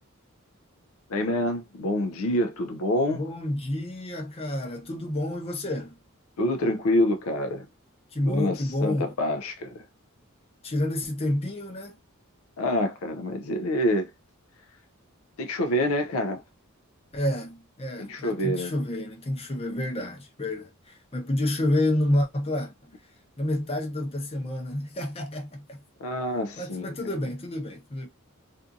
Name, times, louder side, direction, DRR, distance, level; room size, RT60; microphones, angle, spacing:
voice 1, 1.1-3.2 6.4-7.7 8.3-9.8 12.6-14.1 15.4-16.4 18.0-18.7 26.0-27.0, left 1 dB, 70° left, 0.4 m, -27 dB
voice 2, 3.1-6.0 8.1-9.1 10.6-11.9 17.1-22.7 23.4-25.8 26.6-28.1, left 1 dB, 30° left, 0.7 m, -29 dB
2.6 x 2.4 x 2.5 m
head